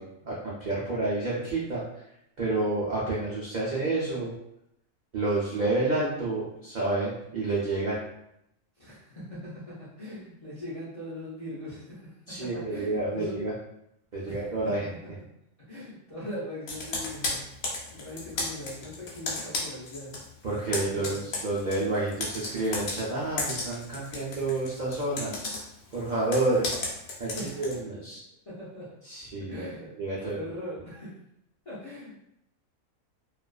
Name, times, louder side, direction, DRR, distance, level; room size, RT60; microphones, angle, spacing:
voice 1, 0.0-2.0 2.4-4.3 5.1-8.0 12.3-13.5 14.1-14.9 20.4-25.4 25.9-26.7 27.2-28.2 29.0-29.6 30.0-30.4, right 2 dB, 70° right, -6 dB, 0.4 m, -29 dB
voice 2, 8.8-13.4 14.2-14.6 15.2-15.3 15.6-20.2 20.7-21.2 27.3-27.8 28.5-28.9 29.4-29.9 30.2-31.2 31.6-32.1, left 1 dB, 45° left, -9 dB, 0.4 m, -41 dB
Computer keyboard, 16.7-20.3 20.5-27.8, left 2 dB, 80° left, 1.0 m, -34 dB
2.4 x 2.3 x 2.2 m, 0.80 s
omnidirectional pair, 1.4 m